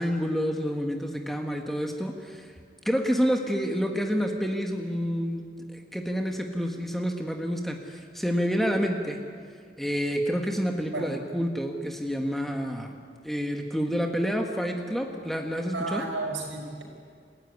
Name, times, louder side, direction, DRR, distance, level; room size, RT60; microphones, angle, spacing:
voice 1, 0.0-2.5 2.8-5.4 5.7-9.2 9.8-13.0 13.2-16.0, equal, ahead, 3 dB, 1.6 m, -28 dB
voice 2, 15.7-16.8, right 2 dB, 90° right, 2 dB, 5.2 m, -32 dB
28.0 x 15.5 x 9.6 m, 2.1 s
head